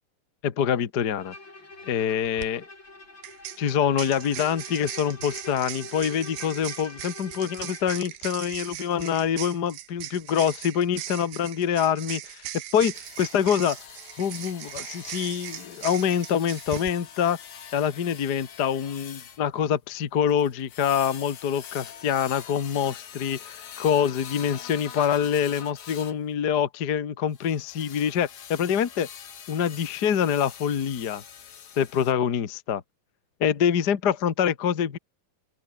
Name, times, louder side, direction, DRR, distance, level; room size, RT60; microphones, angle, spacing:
voice 1, 0.4-1.3 1.9-2.6 3.6-13.8 14.2-17.4 17.7-29.1 29.5-31.2 31.8-32.8 33.4-35.0, left 8 dB, 50° left, 1.2 m, -25 dB
Bowed string instrument, 1.2-8.1, left 2 dB, 30° left, 7.1 m, -44 dB
sound 1, 2.2-2.5 3.2-16.9, right 13 dB, 75° right, 3.1 m, -39 dB
sound 2, 12.9-26.2 27.3-32.1, left 8 dB, 70° left, 4.5 m, -44 dB
open air
omnidirectional pair, 4.2 m